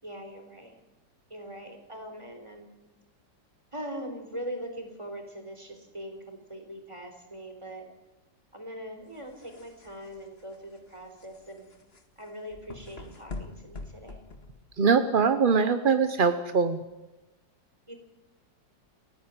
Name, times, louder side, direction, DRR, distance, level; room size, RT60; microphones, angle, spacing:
voice 1, 0.0-0.7 1.3-2.7 3.7-7.9 8.5-11.7 12.2-14.2 17.9-18.0, equal, 15° right, 4 dB, 3.9 m, -41 dB
sound 1, 9.1-15.0, left 3 dB, 35° left, 1.8 m, -45 dB
voice 2, 14.8-16.8, right 5 dB, 45° right, 10 dB, 0.6 m, -22 dB
30.0 x 10.5 x 9.6 m, 1.0 s
omnidirectional pair, 2.0 m